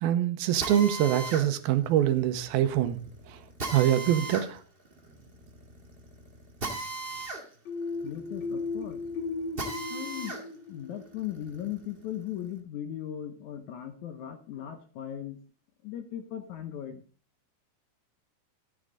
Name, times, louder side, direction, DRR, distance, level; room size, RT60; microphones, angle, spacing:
voice 1, 0.0-3.0 3.3-3.4 3.7-4.6, right 11 dB, 85° right, 2.7 m, -24 dB
Drill, 0.6-10.4 10.9-12.5, right 2 dB, 35° right, 0.8 m, -39 dB
sound 1, 7.7-11.3, left 3 dB, 55° left, 1.4 m, -36 dB
voice 2, 8.0-9.0 9.9-10.4 10.7-15.4 15.8-17.0, left 10 dB, 70° left, 1.9 m, -38 dB
13.5 x 8.9 x 3.8 m
omnidirectional pair, 4.3 m